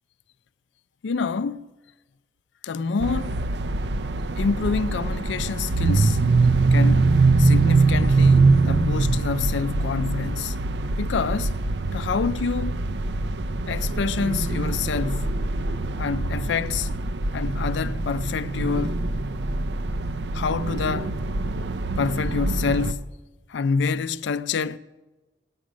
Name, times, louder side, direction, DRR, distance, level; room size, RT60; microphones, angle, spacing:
voice 1, 1.0-1.6 2.6-3.4 4.4-6.2 6.7-7.1 7.4-10.6 11.0-11.5 11.9-12.8 13.7-15.4 16.0-16.9 17.3-19.0 20.3-21.2 22.0-23.1 23.5-24.8, left 5 dB, 85° left, 0.4 m, -27 dB
sound 1, 3.0-22.9, right 3 dB, 70° right, 0.6 m, -23 dB
18.0 x 9.5 x 6.3 m
head